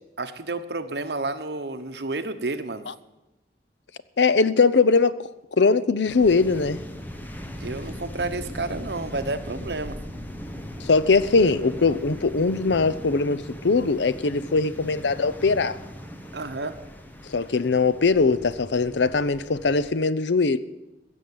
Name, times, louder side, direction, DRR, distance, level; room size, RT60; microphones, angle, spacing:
voice 1, 0.2-2.9 7.6-10.0 16.3-16.7, right 3 dB, 70° right, 8 dB, 1.1 m, -30 dB
voice 2, 4.2-5.1 5.6-6.8 10.8-15.8 17.3-20.6, left 4 dB, 85° left, 15 dB, 0.7 m, -21 dB
sound 1, 6.1-19.9, equal, 10° left, 1.1 m, -39 dB
16.5 x 7.1 x 9.6 m, 1.0 s
head